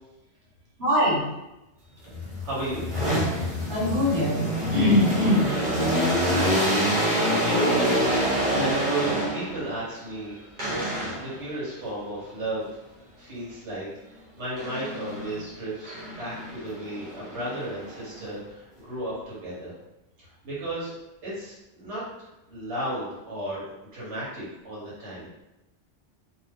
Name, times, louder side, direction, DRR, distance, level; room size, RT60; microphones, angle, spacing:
voice 1, 0.8-1.2 3.7-4.4 4.7-5.4 5.8-6.0, left 1 dB, 70° right, -6 dB, 1.3 m, -22 dB
sound 1, 2.1-9.7 10.6-11.4 14.6-15.4 15.8-18.2, equal, 45° right, 1.0 m, -26 dB
voice 2, 2.4-2.9 5.9-7.8 8.5-10.3 10.6-12.8 13.2-13.9 14.4-19.7 20.2-21.0 21.2-22.0 22.5-25.4, right 1 dB, 90° right, -8 dB, 1.2 m, -34 dB
2.5 x 2.3 x 3.4 m, 0.96 s
omnidirectional pair, 1.1 m